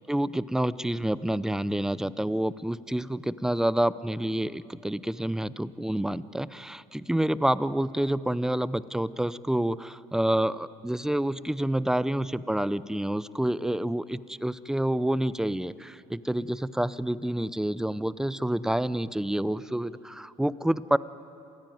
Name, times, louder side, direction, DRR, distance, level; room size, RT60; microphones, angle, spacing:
voice 1, 0.0-21.0, right 1 dB, 5° right, 17 dB, 0.6 m, -28 dB
27.5 x 16.0 x 9.3 m, 2.8 s
hypercardioid pair, 65°, 15 cm